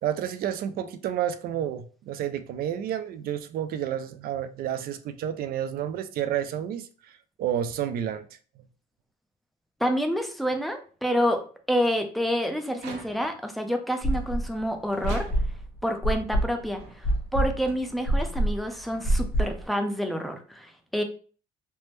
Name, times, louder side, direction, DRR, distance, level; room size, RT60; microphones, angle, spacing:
voice 1, 0.0-6.9 7.4-8.2, right 10 dB, 60° right, 0.4 m, -30 dB
voice 2, 9.8-11.4 11.7-15.3 15.8-21.0, equal, ahead, 0.4 m, -28 dB
sound 1, 12.7-13.5 14.1-15.8 16.4-20.0, right 4 dB, 85° right, 0.7 m, -47 dB
sound 2, 14.0-14.6 15.0-19.7, right 1 dB, 45° left, 1.1 m, -26 dB
3.3 x 2.0 x 3.0 m
cardioid pair, 110°, 17 cm